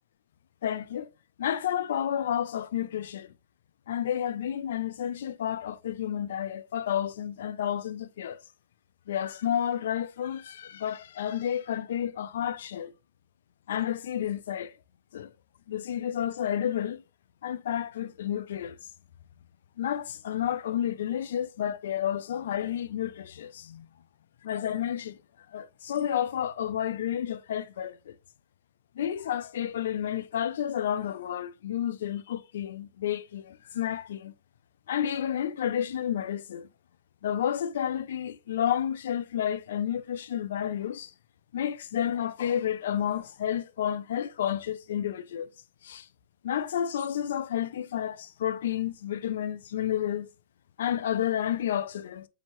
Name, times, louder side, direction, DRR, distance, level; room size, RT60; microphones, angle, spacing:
voice 1, 0.6-1.1 1.4-3.3 3.9-8.4 9.1-12.9 13.7-14.7 15.1-15.3 15.7-17.0 17.4-18.8 19.8-23.9 24.4-25.2 25.5-28.1 29.0-34.3 34.9-36.7 37.2-41.1 41.5-45.5 45.8-46.1 46.4-50.3 50.8-52.3, left 10 dB, 85° left, 0.4 m, -31 dB
5.4 x 2.8 x 3.0 m
supercardioid pair, 150°, 0 cm